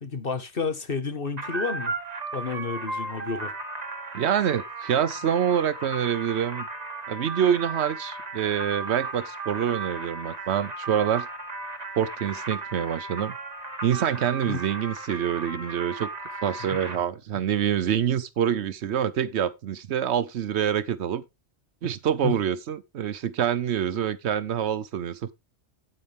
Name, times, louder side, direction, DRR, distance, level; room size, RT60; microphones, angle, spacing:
voice 1, 0.0-1.9 2.3-3.5 14.5-14.6 22.2-22.4, left 4 dB, 55° left, 1.7 m, -30 dB
sound 1, 1.4-17.0, right 3 dB, 40° right, 1.4 m, -35 dB
voice 2, 4.1-6.7 7.1-11.3 12.0-13.3 13.8-16.1 16.4-21.2 21.8-25.3, right 9 dB, 80° right, 1.0 m, -26 dB
9.7 x 8.7 x 3.5 m
omnidirectional pair, 1.1 m